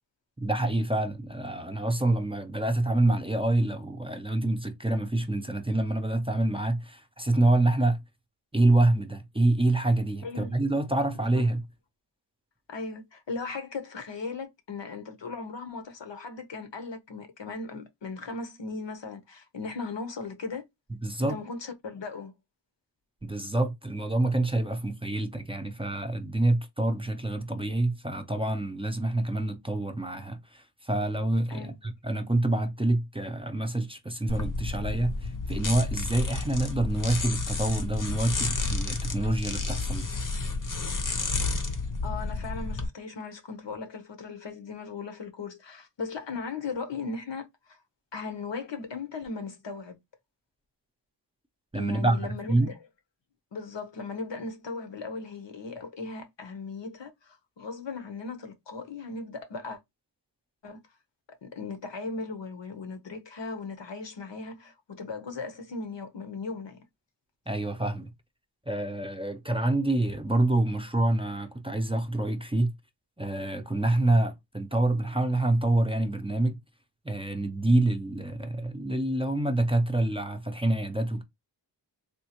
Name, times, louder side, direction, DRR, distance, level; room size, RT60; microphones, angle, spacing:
voice 1, 0.4-8.0 8.5-11.7 20.9-21.4 23.2-40.1 51.7-52.7 67.5-68.1 68.7-72.7 73.2-76.6 77.0-81.2, right 2 dB, 15° right, 0.5 m, -27 dB
voice 2, 10.2-10.6 11.2-11.4 12.7-20.7 21.2-22.3 31.5-31.8 42.0-47.8 48.1-50.0 51.7-52.7 53.5-59.8 60.6-60.8 61.4-66.8, left 4 dB, 75° left, 0.9 m, -37 dB
sound 1, 34.3-42.9, left 3 dB, 45° left, 0.7 m, -31 dB
3.6 x 2.3 x 2.8 m
wide cardioid pair, 75°, 44 cm